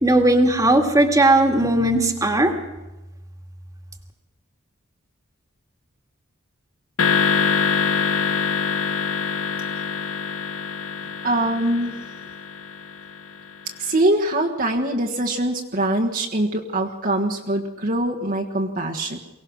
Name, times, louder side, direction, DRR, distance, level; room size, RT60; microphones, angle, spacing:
voice 1, 0.0-2.5, right 1 dB, 15° right, 3 dB, 2.1 m, -17 dB
sound 1, 7.0-13.4, left 6 dB, 90° left, 1.3 m, -24 dB
voice 2, 11.2-11.9 13.8-19.2, right 1 dB, 45° right, 0 dB, 1.5 m, -23 dB
23.5 x 18.0 x 6.4 m, 1.0 s
head